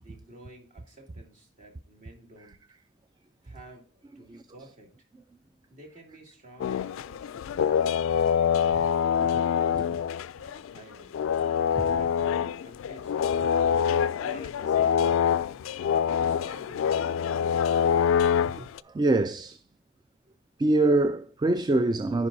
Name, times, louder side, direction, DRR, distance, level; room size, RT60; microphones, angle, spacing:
voice 1, 0.0-2.7 3.4-5.1 5.7-9.7 10.3-11.1 11.9-13.4 14.2-15.6 16.2-17.4, right 1 dB, 40° right, 2.6 m, -51 dB
sound 1, 6.6-10.8 11.1-18.8, left 8 dB, 85° left, 0.3 m, -25 dB
voice 2, 18.6-19.6 20.6-22.3, right 2 dB, 20° right, 0.3 m, -25 dB
15.0 x 5.2 x 2.7 m
head